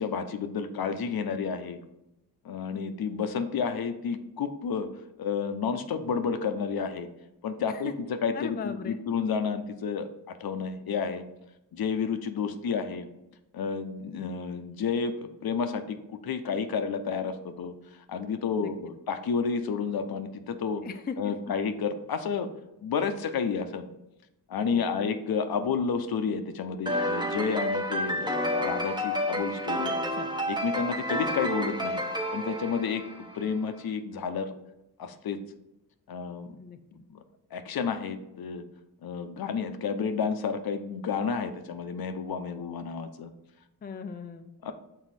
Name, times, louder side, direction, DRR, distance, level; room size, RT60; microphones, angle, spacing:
voice 1, 0.0-1.8 2.4-4.9 5.2-7.1 7.4-7.9 8.2-11.2 11.7-13.1 13.5-20.8 21.2-22.5 22.8-23.9 24.5-30.1 30.5-32.0 32.3-34.5 35.0-35.4 36.1-36.6 36.9-37.2 37.5-38.6 39.0-43.3 44.6-44.7, left 6 dB, 65° left, 9 dB, 0.7 m, -31 dB
voice 2, 8.3-9.0 18.6-18.7 20.8-21.4 24.7-25.1 29.9-30.3 36.6-36.8 43.8-44.5, left 5 dB, 25° left, 8 dB, 0.4 m, -38 dB
sound 1, 26.9-33.5, equal, 10° right, 0.7 m, -30 dB
6.2 x 3.9 x 4.1 m, 0.91 s
cardioid pair, 70°, 40 cm